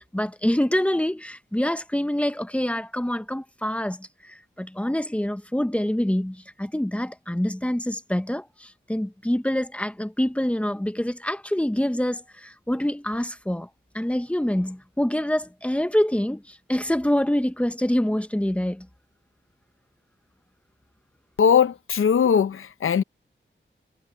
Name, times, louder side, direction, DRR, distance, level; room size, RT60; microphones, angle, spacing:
voice 1, 0.0-13.7 13.9-18.9, left 1 dB, 5° left, 0.9 m, -26 dB
voice 2, 21.4-23.0, left 7 dB, 90° left, 0.7 m, -20 dB
wide cardioid pair, 130°, 20 cm